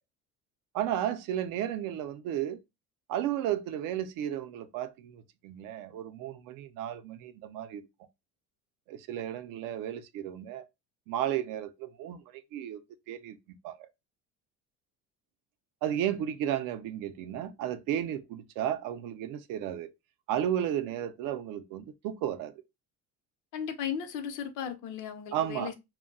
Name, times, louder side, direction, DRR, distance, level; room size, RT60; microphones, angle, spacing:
voice 1, 0.7-2.6 3.1-7.9 8.9-10.6 11.1-12.8 13.1-13.9 15.8-19.9 20.3-22.6 25.3-25.7, right 11 dB, 75° right, 0.5 m, -33 dB
voice 2, 23.5-25.7, left 8 dB, 65° left, 0.7 m, -36 dB
2.2 x 2.2 x 3.6 m
cardioid pair, 110°, 33 cm